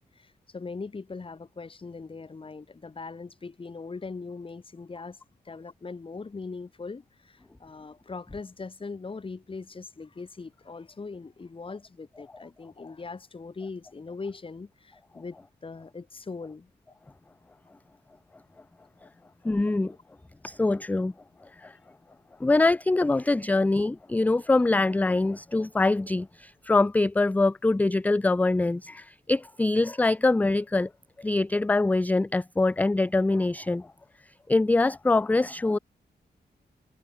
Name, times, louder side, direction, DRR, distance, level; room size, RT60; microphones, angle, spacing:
voice 1, 0.0-16.7 19.0-19.1, left 4 dB, 30° left, 2.9 m, -40 dB
voice 2, 19.4-19.9 20.4-21.1 21.6-21.8 22.4-30.9 31.2-33.9 34.5-35.8, left 2 dB, 10° left, 0.3 m, -24 dB
wide cardioid pair, 155°, 18 cm